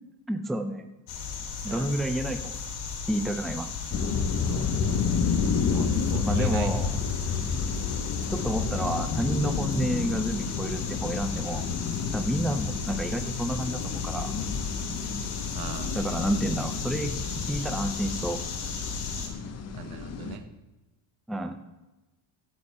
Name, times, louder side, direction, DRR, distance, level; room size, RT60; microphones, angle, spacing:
voice 1, 0.3-0.9 1.6-2.6 3.1-3.7 6.3-7.0 8.3-11.7 12.1-14.3 15.9-18.4 21.3-21.6, right 1 dB, ahead, 7 dB, 0.4 m, -30 dB
sound 1, 1.1-19.3, left 5 dB, 80° left, 2.5 m, -36 dB
voice 2, 1.7-2.1 4.4-4.7 5.7-7.0 7.3-7.6 15.5-16.0 19.7-20.4, right 7 dB, 45° right, 8 dB, 1.2 m, -40 dB
sound 2, 3.9-20.4, left 5 dB, 30° left, 0.8 m, -30 dB
13.5 x 8.5 x 4.2 m, 1.1 s
cardioid pair, 160°, 49 cm